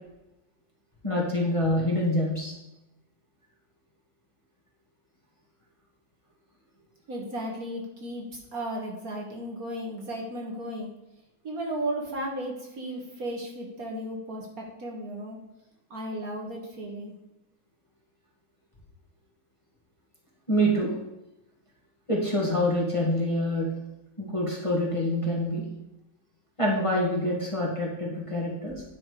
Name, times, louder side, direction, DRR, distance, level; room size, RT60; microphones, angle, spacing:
voice 1, 1.0-2.5 20.5-20.9 22.1-23.7 24.2-25.6 26.6-28.8, equal, 15° left, -4 dB, 2.1 m, -26 dB
voice 2, 7.1-10.9 11.4-15.4 15.9-17.1, right 1 dB, 55° right, 0 dB, 2.0 m, -35 dB
9.9 x 6.0 x 4.9 m, 0.92 s
omnidirectional pair, 1.9 m